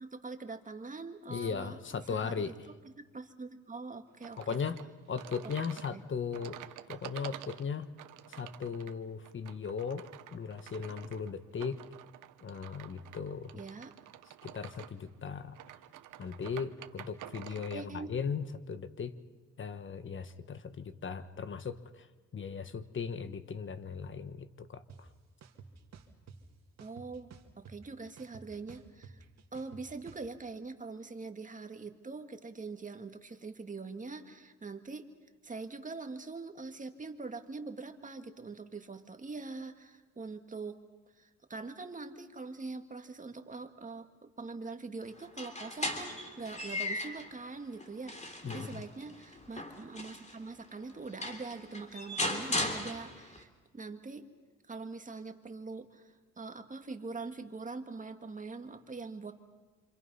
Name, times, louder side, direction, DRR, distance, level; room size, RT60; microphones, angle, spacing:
voice 1, 0.0-1.8 2.1-4.6 5.9-6.0 13.5-13.9 17.7-18.1 26.8-29.2 29.5-35.1 35.4-40.8 41.2-54.3 54.7-59.3, right 3 dB, 25° right, 6 dB, 1.9 m, -43 dB
voice 2, 1.3-2.5 4.4-4.8 5.1-6.6 6.9-7.9 8.3-11.8 12.4-13.6 14.4-15.6 16.2-19.2 19.6-22.1 22.3-25.1 48.4-48.8, left 6 dB, 40° left, 12 dB, 1.4 m, -38 dB
sound 1, 4.2-17.8, right 13 dB, 85° right, 1.1 m, -50 dB
sound 2, 24.9-25.0 25.4-26.4 26.8-27.9 28.2-30.3, right 6 dB, 60° right, 2.3 m, -51 dB
sound 3, 45.2-47.3 47.8-50.4 50.9-51.0 51.2-53.4, left 2 dB, 25° left, 3.1 m, -37 dB
28.0 x 26.5 x 5.6 m, 1.2 s
cardioid pair, 90°, 30 cm